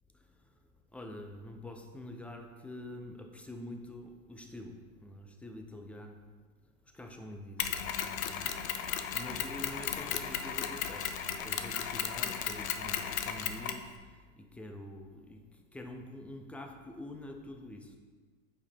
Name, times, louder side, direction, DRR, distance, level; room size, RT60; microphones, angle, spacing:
voice 1, 0.9-6.2 6.9-14.1 14.4-18.0, left 1 dB, 5° left, 4 dB, 0.3 m, -46 dB
Mechanisms, 7.6-13.9, left 8 dB, 85° left, 0.6 m, -35 dB
5.4 x 4.7 x 4.4 m, 1.4 s
hypercardioid pair, 110°, 40 cm